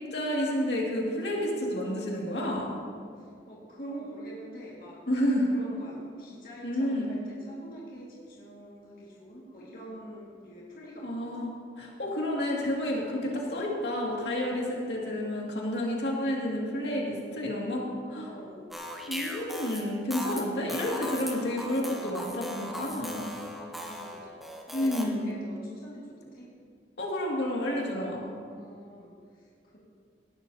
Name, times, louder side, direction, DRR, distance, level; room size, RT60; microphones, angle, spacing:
voice 1, 0.1-2.7 5.1-5.5 6.6-7.1 11.0-18.3 19.1-23.3 24.7-25.3 27.0-28.3, left 1 dB, 70° left, -3 dB, 2.3 m, -30 dB
voice 2, 3.2-5.0 5.5-11.5 18.3-18.7 23.9-24.4 24.7-26.5 28.6-29.5 29.7-29.8, right 1 dB, 50° left, -6 dB, 1.9 m, -45 dB
sound 1, 18.7-25.0, equal, ahead, 1.0 m, -38 dB
18.0 x 11.5 x 2.8 m, 2.2 s
head